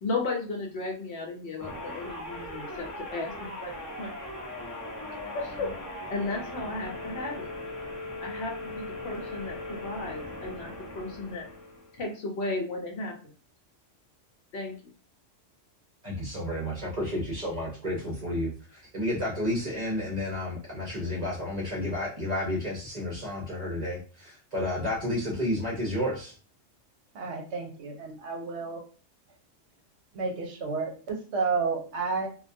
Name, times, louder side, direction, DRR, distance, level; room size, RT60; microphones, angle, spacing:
voice 1, 0.0-4.1 5.1-5.7 6.1-7.5 8.2-11.5 11.9-13.1 14.5-14.7, left 3 dB, 65° left, 1 dB, 0.9 m, -34 dB
sound 1, 1.6-12.0, left 1 dB, 30° left, 0.3 m, -39 dB
voice 2, 16.0-26.3, left 1 dB, 45° right, -3 dB, 0.6 m, -31 dB
voice 3, 27.1-28.8 30.1-32.3, right 4 dB, 70° right, 2 dB, 0.8 m, -31 dB
2.2 x 2.2 x 2.5 m, 0.38 s
omnidirectional pair, 1.3 m